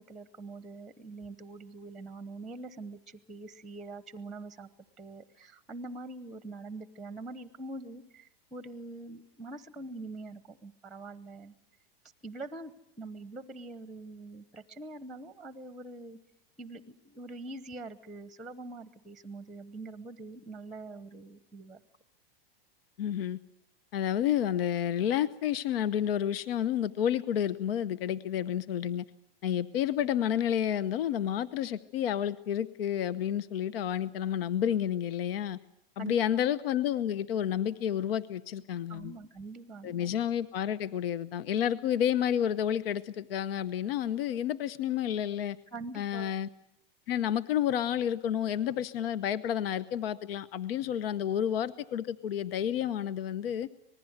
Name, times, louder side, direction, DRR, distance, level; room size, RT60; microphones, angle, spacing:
voice 1, 0.0-4.7 5.0-11.6 12.2-16.2 16.6-21.8 36.0-36.4 38.9-40.1 45.7-46.3, right 2 dB, ahead, 14 dB, 0.9 m, -44 dB
voice 2, 23.0-23.4 23.9-29.0 29.4-35.6 36.0-39.1 39.8-45.6 45.9-46.5 47.1-53.7, left 10 dB, 70° left, 16 dB, 1.0 m, -30 dB
26.0 x 20.0 x 8.1 m, 0.77 s
supercardioid pair, 145°, 30 cm